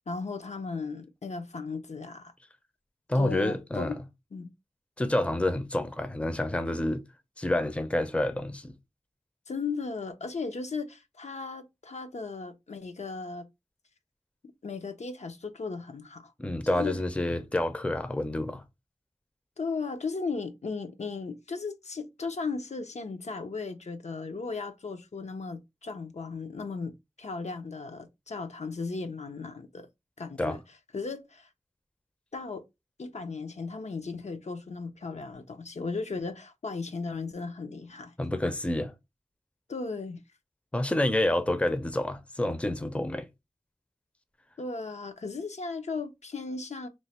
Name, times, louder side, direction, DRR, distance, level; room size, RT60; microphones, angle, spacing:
voice 1, 0.1-2.3 3.1-4.0 4.3-4.5 9.5-13.4 14.6-16.3 16.7-17.0 19.6-29.9 30.2-30.6 30.9-31.5 32.3-32.6 33.0-38.1 39.7-40.2 44.6-46.9, left 4 dB, 70° left, 0.5 m, -36 dB
voice 2, 3.1-4.0 5.0-7.0 7.4-8.7 16.4-18.6 30.4-30.6 38.2-38.9 40.7-43.3, left 1 dB, 10° left, 0.5 m, -28 dB
3.0 x 2.1 x 4.1 m
wide cardioid pair, 55°, 12 cm